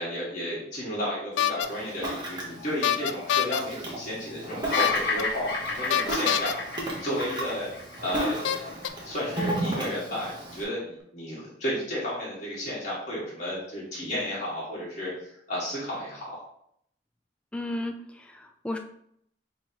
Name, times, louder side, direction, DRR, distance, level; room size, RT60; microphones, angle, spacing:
voice 1, 0.0-7.7 8.0-8.7 9.0-16.4, equal, 45° left, -8 dB, 1.6 m, -33 dB
sound 1, 1.4-1.7 2.8-3.6 4.7-5.2 5.9-6.5 7.6-7.7 8.4-8.9, left 9 dB, 85° left, 0.3 m, -25 dB
Ocean, 1.6-10.6, right 1 dB, 25° right, 0.9 m, -34 dB
Bird vocalization bird call bird song, 4.7-9.0, left 3 dB, 70° left, 1.0 m, -32 dB
voice 2, 17.5-18.8, left 1 dB, 5° left, 4 dB, 0.4 m, -34 dB
5.5 x 3.1 x 2.8 m, 0.71 s
head